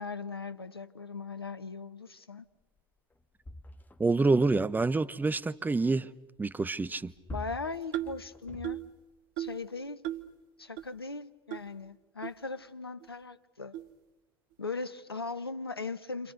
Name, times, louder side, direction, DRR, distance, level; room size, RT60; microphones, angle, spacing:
voice 1, 0.0-2.5 7.3-8.8 9.4-10.0 10.6-13.8 14.6-16.3, left 4 dB, 85° left, 1.0 m, -39 dB
sound 1, 2.8-2.9 3.1-4.5 6.7-9.2 9.9-10.0, left 1 dB, 15° left, 1.8 m, -46 dB
voice 2, 4.0-6.1 6.4-7.1, right 3 dB, 15° right, 1.0 m, -27 dB
sound 2, 7.9-8.2 8.6-8.9 9.4-9.6 10.0-10.3 10.8-10.9 11.5-11.6 12.2-12.3 13.0-13.1 13.7-13.9, right 13 dB, 60° right, 1.1 m, -36 dB
29.0 x 26.5 x 6.7 m
figure-of-eight pair, 65°, 12 cm